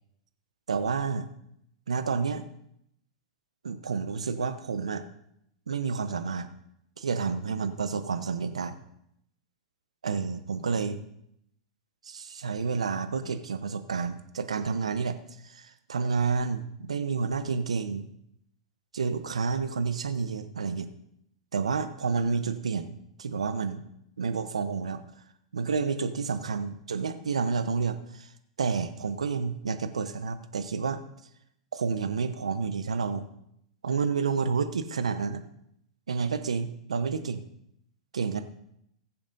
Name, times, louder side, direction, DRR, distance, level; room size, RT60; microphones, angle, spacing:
voice 1, 0.7-1.3 1.9-2.4 3.6-5.0 5.7-6.5 7.0-8.8 10.0-11.0 12.0-15.2 15.4-18.1 18.9-20.9 21.5-23.8 24.2-25.0 25.5-28.3 28.6-31.0 31.7-33.3 33.8-35.4 36.1-37.4 38.1-38.4, right 5 dB, 80° right, 10 dB, 0.9 m, -30 dB
20.5 x 7.1 x 2.7 m, 0.74 s
hypercardioid pair, 100°, 3 cm